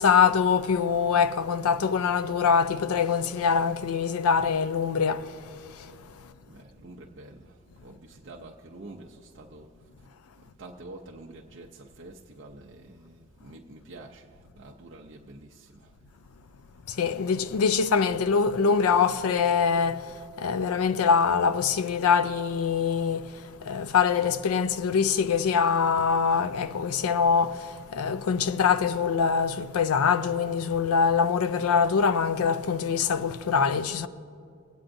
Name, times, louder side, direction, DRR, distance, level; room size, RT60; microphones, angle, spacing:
voice 1, 0.0-5.9 16.9-34.1, left 6 dB, 80° left, 0.4 m, -24 dB
voice 2, 6.5-10.1 10.4-16.0, right 2 dB, 55° right, 0.6 m, -47 dB
21.5 x 8.7 x 2.6 m
head